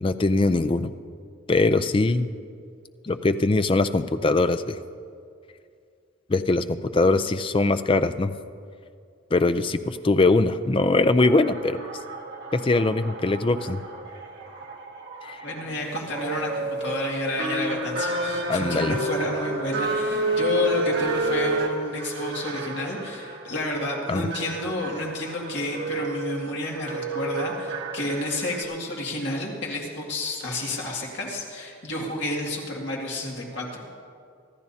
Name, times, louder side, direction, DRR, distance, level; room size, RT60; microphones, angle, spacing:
voice 1, 0.0-0.9 1.5-2.3 3.0-4.8 6.3-8.3 9.3-11.8 12.5-13.8 15.2-15.4 18.5-19.0 24.1-24.3, left 2 dB, 25° left, 10 dB, 0.4 m, -22 dB
sound 1, 11.2-28.6, right 2 dB, 50° right, 1.5 m, -31 dB
voice 2, 15.4-34.0, left 1 dB, 55° left, -2 dB, 2.2 m, -30 dB
25.0 x 13.5 x 2.8 m, 2.3 s
head